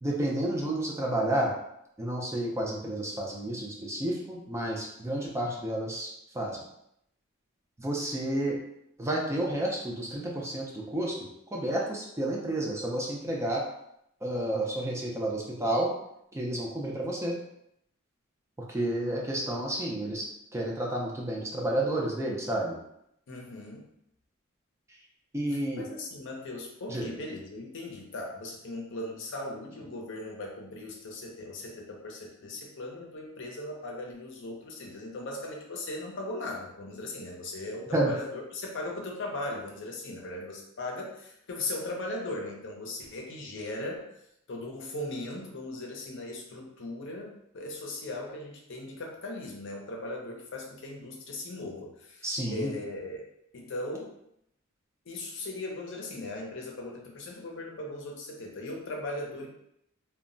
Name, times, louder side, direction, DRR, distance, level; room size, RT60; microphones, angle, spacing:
voice 1, 0.0-1.5 2.0-6.6 7.8-8.6 9.0-11.2 11.5-13.6 14.2-15.9 16.3-17.4 18.7-20.2 20.5-22.8 25.3-25.9 26.9-27.1 37.9-38.1 52.2-52.7, right 1 dB, 15° right, -2 dB, 0.4 m, -30 dB
voice 2, 23.3-23.9 25.5-44.1 44.5-53.2 53.5-54.1 55.1-59.5, left 2 dB, 60° left, 0 dB, 0.6 m, -38 dB
2.2 x 2.0 x 3.7 m, 0.76 s
head